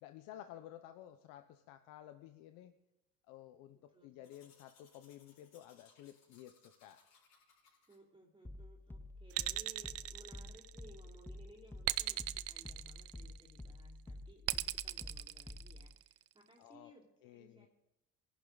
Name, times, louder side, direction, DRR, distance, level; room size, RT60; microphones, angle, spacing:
voice 1, 0.0-2.8 3.3-7.0 16.6-16.9 17.2-17.7, left 12 dB, 80° left, 8 dB, 0.9 m, -54 dB
voice 2, 3.9-4.4 7.9-17.7, right 1 dB, 15° right, -2 dB, 2.8 m, -61 dB
Domestic sounds home sounds, 4.2-8.0, left 5 dB, 55° left, 4.7 m, -68 dB
sound 1, 8.4-15.9, left 1 dB, 5° left, 0.6 m, -50 dB
sound 2, 9.3-11.0 11.8-13.5 14.5-16.1, right 15 dB, 45° right, 0.4 m, -38 dB
21.5 x 11.0 x 4.0 m, 0.93 s
cardioid pair, 110°, 32 cm